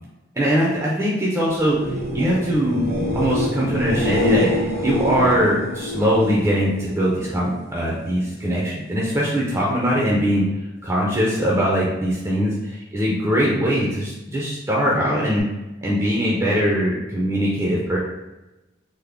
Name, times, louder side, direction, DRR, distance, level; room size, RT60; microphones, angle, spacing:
voice 1, 0.4-2.8 3.1-10.4 10.8-15.4 15.8-18.0, equal, 15° right, -5 dB, 0.4 m, -21 dB
sound 1, 1.7-7.4 7.8-8.3 15.4-15.5, left 1 dB, 55° right, 0.7 m, -26 dB
3.3 x 2.1 x 3.4 m, 1.0 s
head